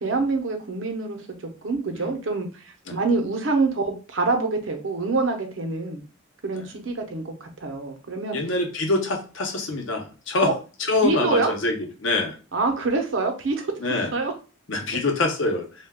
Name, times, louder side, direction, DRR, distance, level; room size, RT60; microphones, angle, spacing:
voice 1, 0.0-1.3 1.6-6.0 6.4-8.4 10.4-10.5 11.0-11.5 12.5-13.7 14.1-14.3, right 3 dB, 85° right, 4 dB, 0.7 m, -25 dB
voice 2, 8.3-10.5 10.9-12.4 13.8-14.1 14.7-15.7, left 2 dB, 80° left, 2 dB, 0.7 m, -25 dB
2.2 x 2.2 x 3.4 m, 0.34 s
head